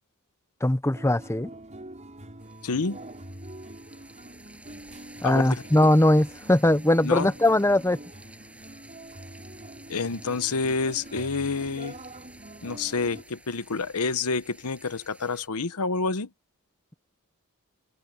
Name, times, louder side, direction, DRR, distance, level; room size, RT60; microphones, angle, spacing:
voice 1, 0.6-1.5 5.2-8.0, left 1 dB, 10° left, 0.9 m, -20 dB
sound 1, 0.9-13.2, right 1 dB, 35° right, 7.0 m, -44 dB
sound 2, 2.4-15.5, right 1 dB, 5° right, 7.9 m, -52 dB
voice 2, 2.6-3.0 5.2-5.5 7.0-7.3 9.9-11.9 12.6-16.3, left 4 dB, 90° left, 1.0 m, -28 dB
head